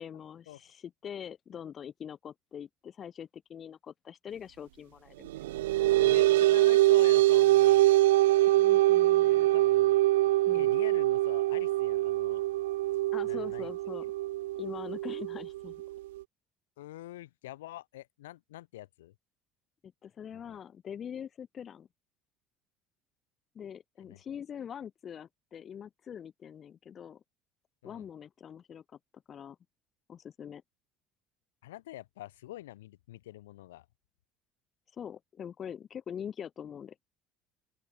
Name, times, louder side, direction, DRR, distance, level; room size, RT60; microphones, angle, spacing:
voice 1, 0.0-5.3 8.6-9.5 10.5-10.7 13.1-14.1 14.6-15.7 19.8-21.9 23.6-27.2 27.8-28.8 29.3-29.6 30.1-30.6 34.9-37.0, left 8 dB, 40° left, 5.2 m, -43 dB
sound 1, 5.2-16.2, right 16 dB, 75° right, 0.4 m, -24 dB
voice 2, 6.0-7.9 9.2-10.0 10.5-12.4 13.2-13.7 16.8-19.1 20.3-20.6 24.0-24.2 27.8-28.1 31.6-33.9, left 15 dB, 75° left, 7.7 m, -46 dB
open air
figure-of-eight pair, 60°, 0 cm